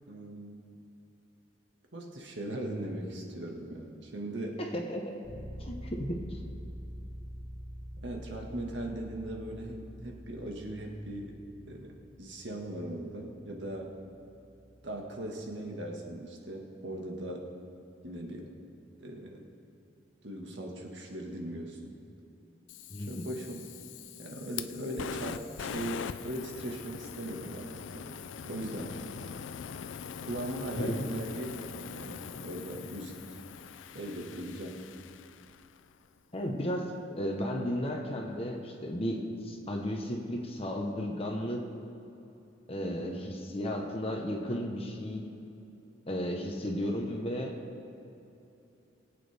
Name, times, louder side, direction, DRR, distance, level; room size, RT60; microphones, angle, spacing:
voice 1, 0.1-0.6 1.9-4.6 8.0-11.4 11.7-13.9 14.8-17.5 18.0-18.5 19.0-19.5 20.2-21.9 23.1-23.7 24.2-28.2 28.4-29.0 30.2-33.2 33.9-34.8 42.8-43.2, right 1 dB, 70° right, 0 dB, 1.7 m, -39 dB
voice 2, 4.6-5.1 5.6-6.4 22.9-23.2 30.8-31.1 36.3-41.6 42.7-43.1 43.5-45.2 46.1-47.6, equal, 30° left, 2 dB, 1.0 m, -34 dB
sound 1, 5.2-15.0, equal, 15° right, 2.3 m, -46 dB
Fire, 22.7-35.8, left 7 dB, 80° left, 0.4 m, -42 dB
22.5 x 8.5 x 3.5 m, 2.9 s
head